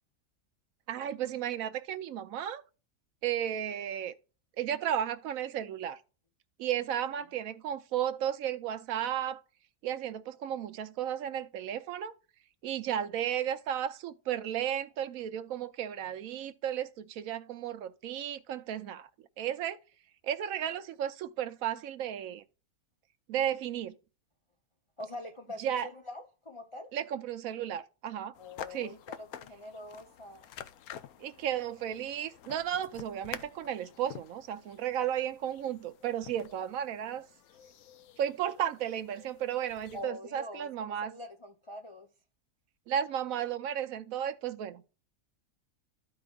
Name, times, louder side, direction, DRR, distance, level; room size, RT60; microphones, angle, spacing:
voice 1, 0.9-2.6 3.2-4.1 4.6-6.0 6.6-9.4 9.8-12.1 12.6-19.8 20.2-22.4 23.3-23.9 25.6-25.9 26.9-28.3 28.7-29.0 31.2-37.3 38.2-41.1 42.9-44.8, right 10 dB, 70° right, 0.9 m, -34 dB
voice 2, 25.0-26.9 28.4-30.5 37.1-37.2 39.9-42.1, left 1 dB, 45° left, 0.4 m, -44 dB
sound 1, 28.3-40.0, left 9 dB, 75° left, 1.1 m, -49 dB
13.5 x 4.7 x 2.3 m
omnidirectional pair, 1.6 m